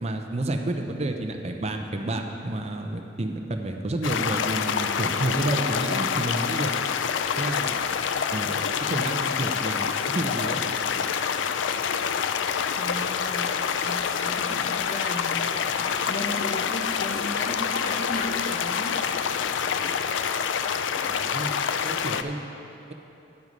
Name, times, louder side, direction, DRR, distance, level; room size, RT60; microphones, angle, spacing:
voice 1, 0.0-6.7 7.4-7.8 8.3-11.1 19.8-19.9 21.0-21.5 21.8-22.5, right 1 dB, 35° right, 4 dB, 0.7 m, -30 dB
sound 1, 4.0-22.2, left 7 dB, 75° left, 0.4 m, -27 dB
voice 2, 12.8-15.5 15.7-19.0, left 1 dB, 45° left, 3 dB, 0.9 m, -35 dB
9.5 x 7.9 x 5.3 m, 2.9 s
head